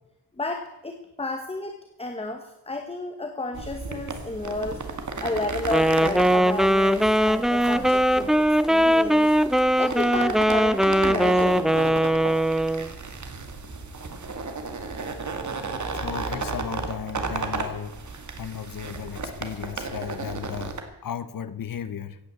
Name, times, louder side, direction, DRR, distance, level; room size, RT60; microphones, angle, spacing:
voice 1, 0.4-4.8 5.2-9.3 9.8-11.7, left 2 dB, 15° left, 5 dB, 1.2 m, -32 dB
sound 1, 3.5-20.8, right 4 dB, 45° right, 2.0 m, -34 dB
Wind instrument woodwind instrument, 5.6-12.9, equal, ahead, 0.5 m, -20 dB
voice 2, 15.9-18.0 18.4-20.8 21.0-22.2, left 8 dB, 55° left, 13 dB, 1.0 m, -35 dB
16.0 x 9.2 x 8.3 m, 0.89 s
wide cardioid pair, 135°, 40 cm